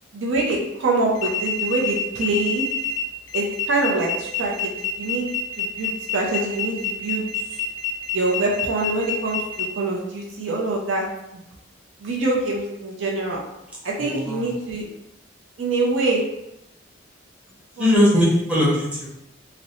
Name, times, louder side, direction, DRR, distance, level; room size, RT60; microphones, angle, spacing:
voice 1, 0.1-2.6 3.3-5.3 5.6-7.2 8.1-11.0 12.0-13.4 13.8-14.8 15.6-16.2 17.8-17.9, right 2 dB, 70° right, -2 dB, 0.5 m, -24 dB
sound 1, 1.1-9.7, left 6 dB, 75° left, 0.4 m, -27 dB
voice 2, 14.0-14.5 17.8-19.1, left 1 dB, 5° right, -8 dB, 0.8 m, -19 dB
2.6 x 2.0 x 2.7 m, 0.86 s
head